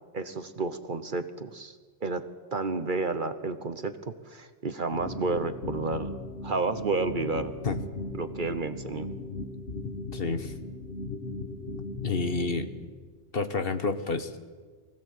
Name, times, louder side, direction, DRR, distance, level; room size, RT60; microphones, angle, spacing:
voice 1, 0.1-2.2 2.5-7.5 8.2-9.2, right 3 dB, 45° right, 10 dB, 1.1 m, -31 dB
sound 1, 4.9-12.9, left 2 dB, 70° left, 2.5 m, -38 dB
voice 2, 9.8-10.5 12.0-12.7 13.3-14.3, left 4 dB, 50° left, 9 dB, 1.4 m, -29 dB
24.0 x 16.5 x 8.4 m, 1.5 s
omnidirectional pair, 1.3 m